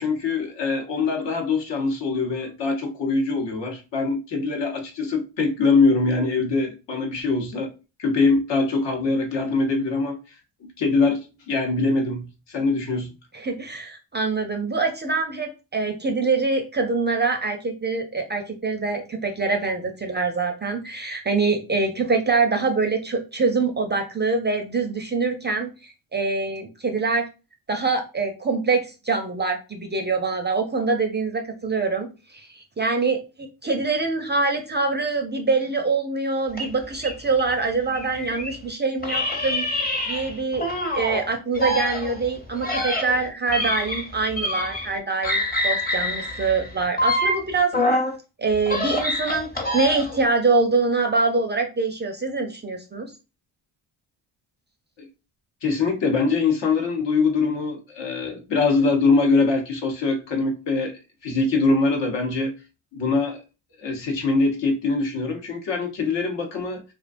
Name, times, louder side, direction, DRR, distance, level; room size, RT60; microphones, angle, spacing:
voice 1, 0.0-7.7 8.0-10.4 10.6-11.2 11.5-13.1 55.0-55.1 55.6-62.5 62.9-63.4 63.8-66.8, left 3 dB, 65° left, 0.9 m, -23 dB
voice 2, 13.3-27.3 27.7-40.6 41.0-47.7 48.4-53.1, right 4 dB, 25° right, 0.4 m, -24 dB
sound 1, 36.5-38.6 39.0-41.2 41.5-45.0 45.2-48.1 48.5-50.2, left 1 dB, 20° left, 0.8 m, -26 dB
2.5 x 2.1 x 2.5 m
supercardioid pair, 60°, 47 cm